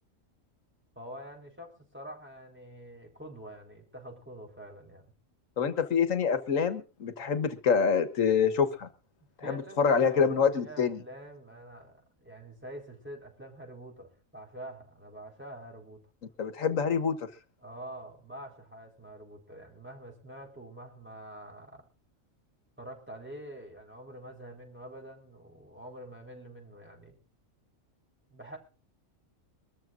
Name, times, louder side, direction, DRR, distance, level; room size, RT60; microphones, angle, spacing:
voice 1, 1.0-5.1 9.4-16.0 17.6-21.8 22.8-27.2 28.3-28.6, right 1 dB, 10° right, 1 dB, 4.3 m, -46 dB
voice 2, 5.6-8.9 9.4-11.0 16.4-17.3, left 6 dB, 75° left, 11 dB, 1.7 m, -26 dB
23.5 x 13.5 x 2.6 m, 0.35 s
omnidirectional pair, 1.4 m